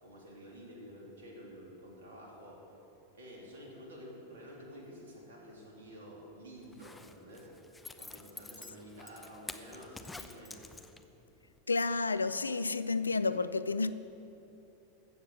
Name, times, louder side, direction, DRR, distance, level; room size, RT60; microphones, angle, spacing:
voice 1, 0.0-2.6 3.1-7.5 8.0-10.6, equal, 60° right, -2 dB, 3.2 m, -50 dB
Zipper (clothing), 6.6-11.2 11.6-11.7, left 3 dB, 10° left, 0.7 m, -48 dB
voice 2, 11.7-13.9, left 3 dB, 80° left, 14 dB, 0.4 m, -30 dB
14.5 x 7.6 x 6.6 m, 2.9 s
figure-of-eight pair, 90°, 0 cm